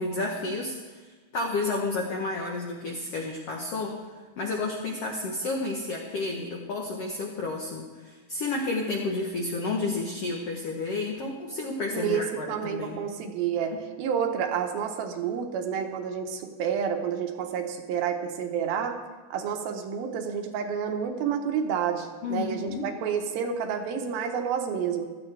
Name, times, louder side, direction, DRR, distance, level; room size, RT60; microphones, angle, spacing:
voice 1, 0.0-4.0 4.4-13.0 22.2-22.9, left 3 dB, 75° left, 0 dB, 1.4 m, -31 dB
voice 2, 11.9-19.0 19.3-25.1, right 7 dB, 80° right, 4 dB, 2.8 m, -29 dB
16.0 x 13.0 x 3.3 m, 1.3 s
omnidirectional pair, 4.3 m